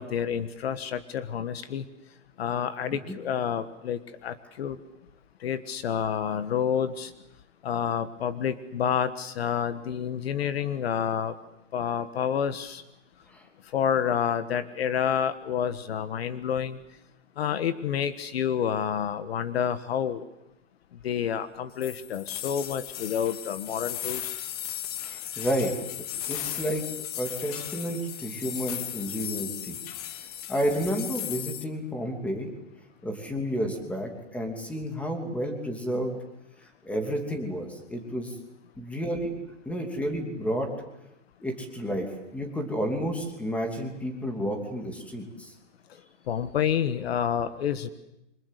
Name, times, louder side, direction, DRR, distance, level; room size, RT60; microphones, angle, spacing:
voice 1, 0.0-1.8 2.4-4.8 5.4-7.1 7.6-11.3 11.7-12.8 13.7-16.8 17.4-20.2 21.0-24.3 46.3-47.9, left 8 dB, 55° left, 12 dB, 1.6 m, -29 dB
sound 1, 21.8-31.6, left 12 dB, 30° left, 1.3 m, -36 dB
voice 2, 25.0-25.7 26.3-26.8 27.2-29.8 30.2-32.5 33.0-36.1 36.8-38.3 38.8-39.4 39.6-40.7 41.4-45.5, equal, 5° left, 4 dB, 2.9 m, -31 dB
27.5 x 25.5 x 8.4 m, 0.92 s
hypercardioid pair, 165°, 37 cm